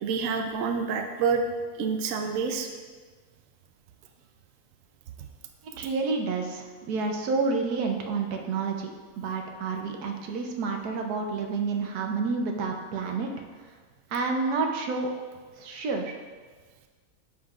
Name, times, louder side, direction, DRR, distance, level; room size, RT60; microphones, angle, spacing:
voice 1, 0.0-1.4 1.8-2.7, right 5 dB, 65° right, 4 dB, 0.9 m, -27 dB
voice 2, 5.8-8.9 9.2-13.3 14.1-15.1 15.6-16.1, right 4 dB, 90° right, 3 dB, 1.3 m, -29 dB
9.7 x 5.6 x 2.4 m, 1.5 s
omnidirectional pair, 1.6 m